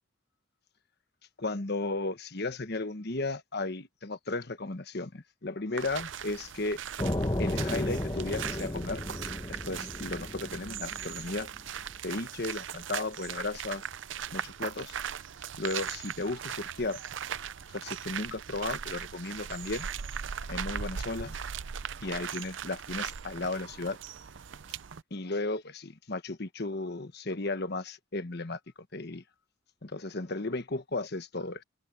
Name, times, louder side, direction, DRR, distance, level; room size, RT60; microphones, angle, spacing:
voice 1, 1.4-6.8 7.4-9.0 9.5-11.5 12.0-13.8 14.3-14.9 15.6-17.0 17.7-19.9 20.5-21.4 22.0-24.0 25.1-28.6 28.9-29.2 29.8-31.6, left 2 dB, 50° left, 1.2 m, -35 dB
sound 1, 5.8-25.0, right 8 dB, 65° right, 0.5 m, -39 dB
sound 2, 7.0-11.8, left 1 dB, 20° left, 1.2 m, -34 dB
head